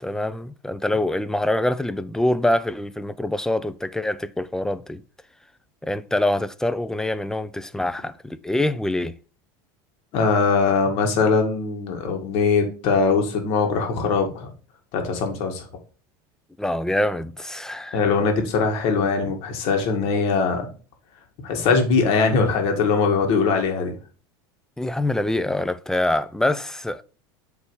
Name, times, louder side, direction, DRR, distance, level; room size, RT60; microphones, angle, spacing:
voice 1, 0.0-5.0 5.8-9.2 16.6-18.0 24.8-27.0, left 1 dB, 5° left, 0.3 m, -25 dB
voice 2, 10.1-14.5 14.9-15.7 17.9-20.7 21.4-24.0, left 4 dB, 60° left, 1.8 m, -21 dB
8.3 x 3.3 x 4.7 m
supercardioid pair, 130°, 11 cm